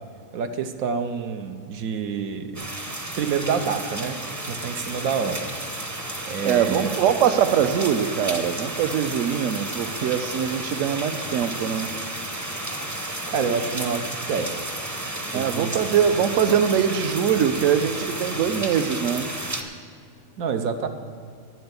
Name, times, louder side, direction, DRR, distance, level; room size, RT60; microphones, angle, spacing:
voice 1, 0.3-2.7 3.2-5.5 6.3-6.9 13.3-14.6 15.3-15.8 20.4-20.9, right 6 dB, 85° right, 7 dB, 1.2 m, -27 dB
sound 1, 2.5-19.6, right 1 dB, 20° right, 0.5 m, -32 dB
voice 2, 6.4-11.9 15.3-19.3, right 8 dB, 70° right, 9 dB, 1.0 m, -22 dB
9.4 x 7.8 x 8.1 m, 2.2 s
omnidirectional pair, 1.4 m